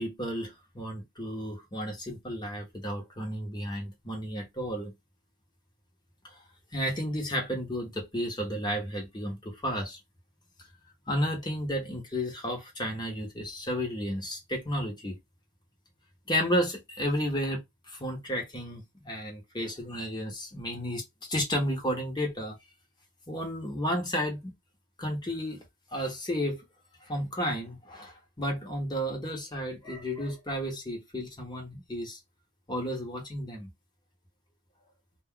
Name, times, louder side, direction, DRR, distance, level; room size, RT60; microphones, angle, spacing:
voice 1, 0.0-4.9 6.2-6.4 6.7-10.0 11.1-15.1 16.3-22.6 23.3-24.4 25.0-25.6 25.9-26.6 27.1-32.2 32.7-33.7, equal, 20° left, 1.0 m, -32 dB
2.4 x 2.3 x 3.7 m
head